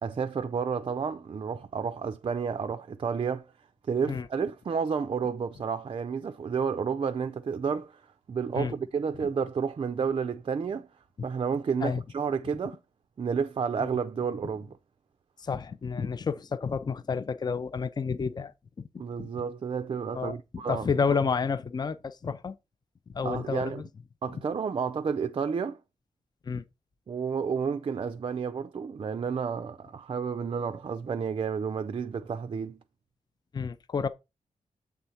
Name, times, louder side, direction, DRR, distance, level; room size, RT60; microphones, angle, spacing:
voice 1, 0.0-3.5 3.9-8.0 8.3-10.9 11.2-12.8 13.2-14.7 19.0-20.9 23.2-23.8 24.2-25.8 27.1-32.8, right 6 dB, 40° right, 0.4 m, -31 dB
voice 2, 15.4-18.5 18.8-18.9 19.2-19.3 20.1-22.5 23.1-23.9 26.4-26.6 33.5-34.1, left 5 dB, 30° left, 0.4 m, -30 dB
7.6 x 3.5 x 5.6 m
wide cardioid pair, 155°, 13 cm